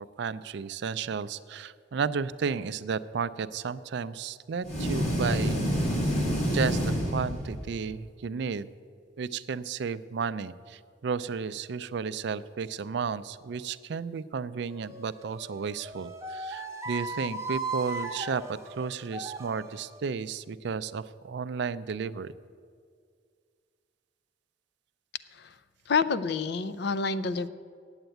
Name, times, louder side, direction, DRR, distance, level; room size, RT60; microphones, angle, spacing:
voice 1, 0.0-5.7 6.5-8.7 9.2-18.4 18.8-22.3, right 6 dB, 65° right, 15 dB, 0.4 m, -33 dB
sound 1, 4.6-7.8, equal, 40° left, 2.3 m, -28 dB
sound 2, 14.7-20.0, right 2 dB, 15° right, 0.8 m, -37 dB
voice 2, 25.9-27.5, left 4 dB, 60° left, 15 dB, 0.5 m, -28 dB
8.9 x 8.0 x 9.1 m, 2.1 s
head